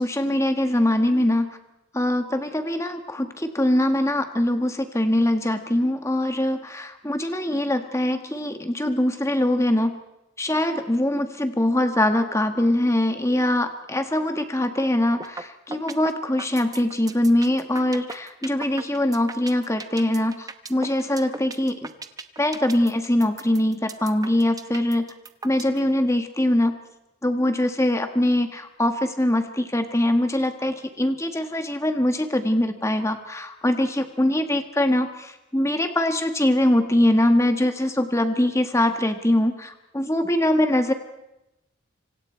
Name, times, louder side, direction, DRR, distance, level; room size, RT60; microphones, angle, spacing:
voice 1, 0.0-1.6 1.9-10.0 10.4-21.8 22.4-25.1 25.4-26.8 27.2-40.9, left 1 dB, 15° left, 7 dB, 1.4 m, -22 dB
sound 1, 15.2-15.4 15.7-25.8, right 3 dB, 15° right, 0.9 m, -37 dB
26.5 x 25.5 x 4.4 m, 0.92 s
head